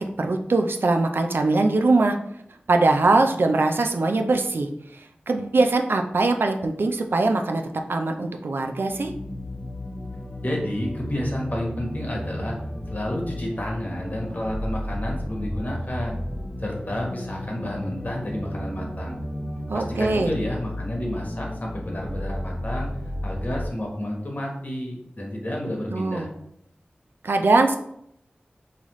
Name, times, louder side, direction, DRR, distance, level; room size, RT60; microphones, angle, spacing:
voice 1, 0.0-2.2 2.7-4.7 4.9-7.6 7.9-9.1 19.7-20.3 25.9-26.3 27.2-27.8, right 3 dB, 75° right, 5 dB, 0.4 m, -22 dB
sound 1, 8.9-23.7, left 1 dB, 25° left, 0.5 m, -33 dB
voice 2, 10.4-12.5 12.9-16.2 16.6-19.2 19.7-22.9 23.2-26.3, left 1 dB, 45° left, -1 dB, 1.2 m, -30 dB
5.5 x 2.4 x 3.0 m, 0.75 s
cardioid pair, 45°, 4 cm